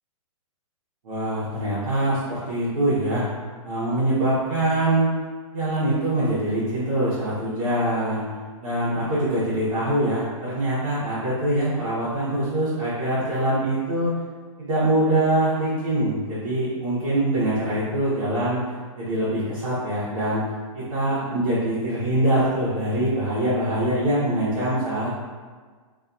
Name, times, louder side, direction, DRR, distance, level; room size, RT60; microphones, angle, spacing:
voice 1, 1.0-3.2 3.6-5.1 5.5-8.2 8.6-14.2 14.6-18.6 19.0-20.4 20.7-25.1, right 1 dB, 70° right, -12 dB, 1.0 m, -23 dB
2.6 x 2.6 x 2.3 m, 1.5 s
hypercardioid pair, 175°, 18 cm